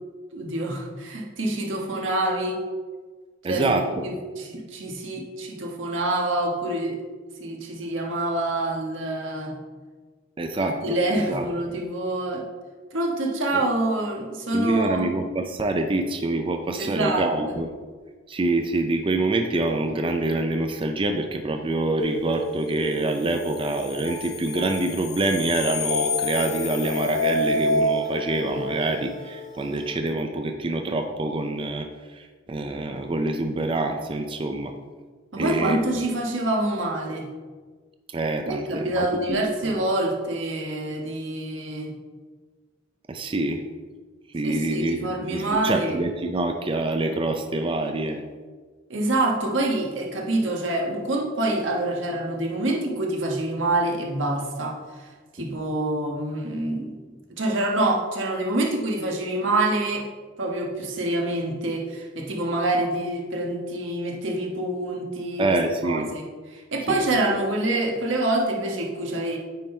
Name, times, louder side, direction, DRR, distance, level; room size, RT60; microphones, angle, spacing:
voice 1, 0.3-2.6 3.5-7.0 7.4-9.5 10.5-12.4 12.9-15.2 16.8-17.5 35.3-37.3 38.4-41.9 44.4-46.0 48.9-54.8 55.3-57.0 57.3-60.1 60.4-65.6 65.8-66.2 66.5-69.4, right 1 dB, 85° right, 0 dB, 1.3 m, -26 dB
voice 2, 3.4-3.9 10.4-11.5 13.5-13.6 14.5-17.7 18.3-34.7 35.4-35.9 38.1-39.8 43.1-43.6 44.3-48.2 55.4-55.6 65.4-66.1 66.9-67.0, right 2 dB, 25° right, 5 dB, 0.4 m, -26 dB
sound 1, 22.0-29.9, left 1 dB, 60° left, 0.8 m, -28 dB
9.2 x 3.8 x 4.3 m, 1.5 s
head